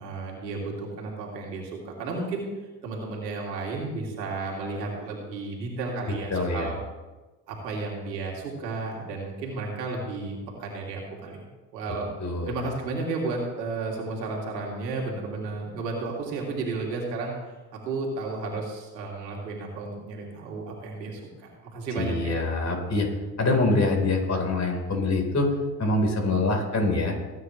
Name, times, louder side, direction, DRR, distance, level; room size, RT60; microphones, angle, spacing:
voice 1, 0.0-2.5 2.8-6.8 7.5-12.1 12.4-17.3 17.8-21.2 21.7-22.4, right 3 dB, 90° right, -1 dB, 2.8 m, -33 dB
voice 2, 6.3-6.7 12.2-12.5 21.9-23.1 23.4-25.5 25.8-27.2, left 2 dB, 35° left, 2 dB, 4.1 m, -24 dB
19.5 x 9.6 x 3.2 m, 1.2 s
hypercardioid pair, 65°, 48 cm